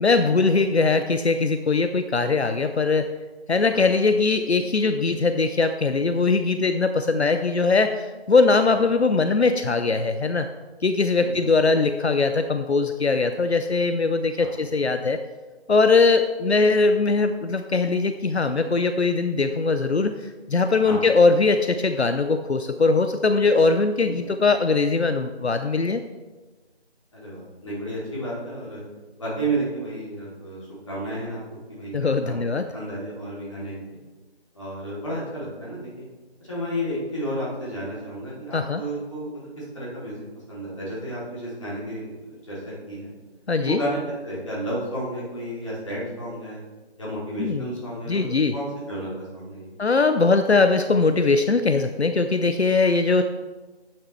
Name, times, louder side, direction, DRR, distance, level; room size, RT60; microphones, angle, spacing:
voice 1, 0.0-3.1 3.5-10.5 10.8-15.2 15.7-26.0 31.9-32.7 38.5-38.8 43.5-43.8 47.4-47.7 48.1-48.5 49.8-53.2, left 3 dB, 75° left, 8 dB, 0.7 m, -21 dB
voice 2, 27.1-28.8 29.2-30.6 30.9-31.4 31.7-32.4 32.7-33.8 34.5-36.1 36.4-43.1 43.6-46.6 47.0-49.7, right 1 dB, 30° left, -7 dB, 3.0 m, -32 dB
11.0 x 8.9 x 3.3 m, 1.3 s
figure-of-eight pair, 165°, 33 cm